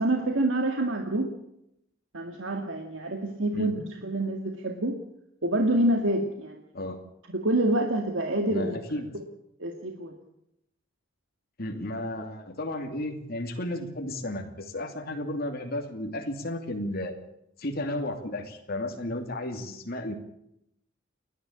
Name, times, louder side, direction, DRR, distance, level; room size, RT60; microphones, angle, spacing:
voice 1, 0.0-1.3 2.1-5.0 5.4-6.6 7.3-8.8 9.6-10.1, right 1 dB, 75° right, 3 dB, 2.1 m, -27 dB
voice 2, 8.5-9.1 11.6-17.1 17.6-20.1, left 1 dB, 50° left, 3 dB, 2.7 m, -33 dB
29.0 x 11.0 x 8.8 m, 0.80 s
head